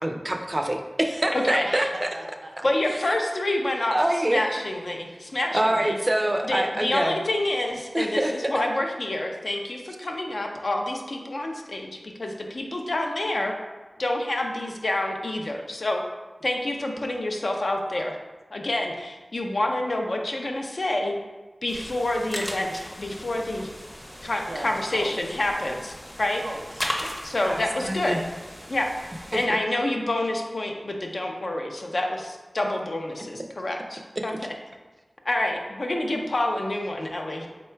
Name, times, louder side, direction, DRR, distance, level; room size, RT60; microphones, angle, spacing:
voice 1, 0.0-2.1 2.6-2.7 3.1-3.2 3.9-4.6 5.5-7.2 7.9-8.5 27.5-28.2 29.3-29.4 34.2-34.3, right 1 dB, 30° right, 4 dB, 0.4 m, -25 dB
voice 2, 1.3-1.9 2.6-4.0 4.3-6.0 6.4-13.5 14.0-16.0 16.4-18.1 18.5-21.1 21.6-23.7 24.2-26.4 27.2-28.2 28.7-28.9 29.3-34.3 35.3-37.5, left 1 dB, 65° left, 2 dB, 0.5 m, -28 dB
voice 3, 2.1-2.6 24.5-25.3 26.4-26.9 27.4-27.5 37.4-37.5, right 1 dB, 75° right, 0 dB, 0.6 m, -37 dB
sound 1, 21.7-29.5, equal, 20° left, 0.7 m, -37 dB
3.8 x 2.2 x 4.3 m, 1.2 s
wide cardioid pair, 60°, 0 cm